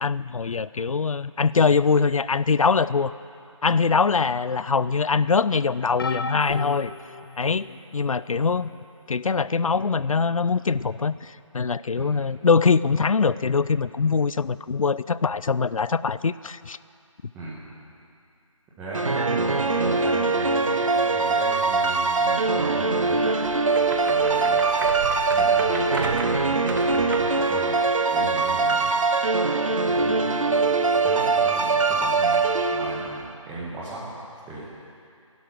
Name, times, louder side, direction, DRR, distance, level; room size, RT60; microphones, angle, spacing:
voice 1, 0.0-3.1 3.6-6.9 7.4-7.7 7.9-8.7 9.1-16.8, left 5 dB, 85° left, 17 dB, 0.5 m, -23 dB
sound 1, 6.0-7.8 8.5-8.8 10.1-10.2, left 3 dB, 45° left, 0.9 m, -34 dB
voice 2, 17.3-17.7 18.8-23.3 24.1-24.7 25.3-27.8 28.1-28.9 29.8-34.1 34.5-34.7, right 2 dB, 10° right, -10 dB, 1.5 m, -36 dB
sound 2, 18.9-33.3, right 4 dB, 75° right, 1.1 m, -22 dB
sound 3, 23.3-27.4, right 4 dB, 40° right, 1.3 m, -35 dB
16.0 x 11.5 x 6.1 m, 2.5 s
figure-of-eight pair, 160°, 17 cm